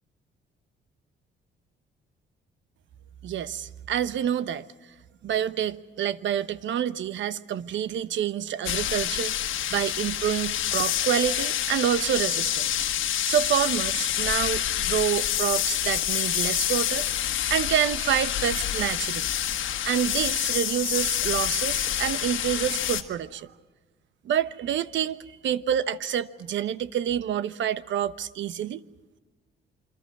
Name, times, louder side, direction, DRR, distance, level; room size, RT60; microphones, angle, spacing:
voice 1, 3.2-4.6 5.2-19.3 19.8-23.5 24.2-28.8, right 10 dB, 70° right, 1.0 m, -28 dB
sound 1, 8.7-23.0, left 11 dB, 80° left, 1.7 m, -27 dB
28.0 x 23.5 x 6.1 m
cardioid pair, 90°, 20 cm